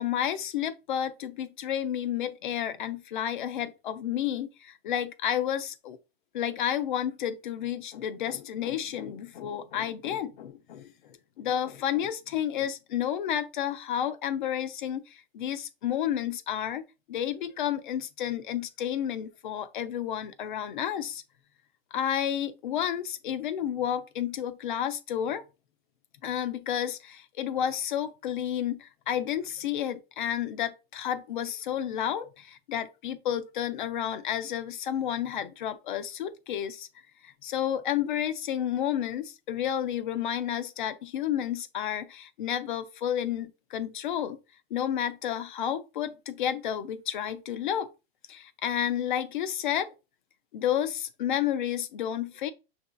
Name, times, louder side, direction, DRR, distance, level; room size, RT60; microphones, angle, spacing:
voice 1, 0.0-6.0 6.3-16.8 17.1-21.2 21.9-25.4 26.2-36.9 37.2-44.4 44.7-47.9 48.3-49.9 50.5-52.5, left 10 dB, 55° left, 0.5 m, -31 dB
6.6 x 2.7 x 2.3 m
supercardioid pair, 180°, 30 cm